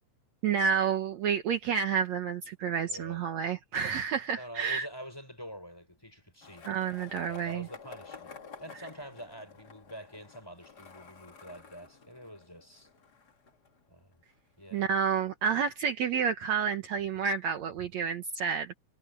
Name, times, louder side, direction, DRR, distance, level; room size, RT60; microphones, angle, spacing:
voice 1, 0.4-4.9 6.6-7.7 14.7-18.7, right 7 dB, 65° right, 2.3 m, -30 dB
voice 2, 2.9-3.2 4.4-6.7 7.3-8.3 8.6-12.9 13.9-14.2 14.6-14.9, equal, 5° left, 5.9 m, -46 dB
Skateboard, 6.4-14.3, left 5 dB, 35° left, 2.2 m, -51 dB
omnidirectional pair, 3.7 m